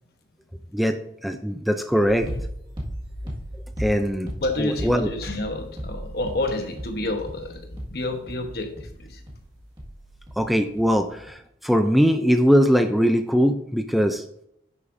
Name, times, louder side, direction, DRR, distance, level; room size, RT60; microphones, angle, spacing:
voice 1, 1.2-2.3 3.8-4.3 4.6-5.1 10.4-14.2, equal, ahead, 7 dB, 0.4 m, -21 dB
sound 1, 2.1-10.5 10.8-11.3, equal, 25° right, 1.8 m, -36 dB
voice 2, 4.4-9.2, left 2 dB, 55° left, 5 dB, 1.1 m, -29 dB
10.5 x 6.6 x 2.6 m, 0.73 s
head